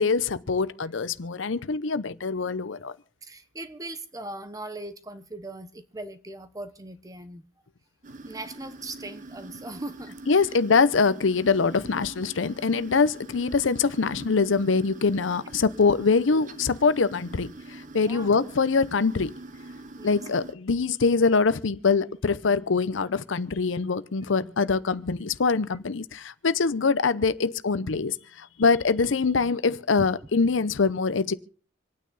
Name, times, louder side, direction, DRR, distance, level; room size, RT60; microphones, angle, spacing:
voice 1, 0.0-2.9 10.3-19.3 20.0-31.3, left 4 dB, 90° left, 0.7 m, -24 dB
voice 2, 3.2-7.4 8.2-10.6 15.6-15.7 18.0-18.3 20.0-20.3 30.0-30.1, right 2 dB, 20° right, 1.0 m, -39 dB
sound 1, 8.0-20.5, right 2 dB, 40° right, 0.9 m, -44 dB
27.0 x 9.3 x 4.1 m
head